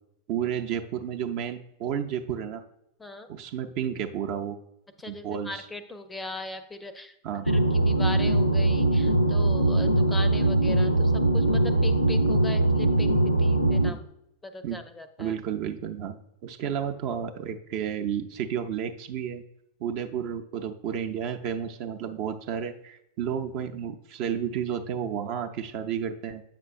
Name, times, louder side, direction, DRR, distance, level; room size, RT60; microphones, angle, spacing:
voice 1, 0.3-2.6 3.3-4.6 5.1-5.7 7.2-7.5 14.6-14.8 15.2-19.4 19.8-26.4, right 8 dB, 45° right, 6 dB, 0.6 m, -31 dB
voice 2, 5.0-7.1 7.5-13.1 13.4-14.0 14.4-15.3, left 2 dB, 10° left, 9 dB, 0.5 m, -39 dB
sound 1, 7.5-13.9, right 2 dB, 90° left, 0.6 m, -22 dB
7.9 x 6.0 x 2.5 m, 0.78 s
figure-of-eight pair, 90°, 0 cm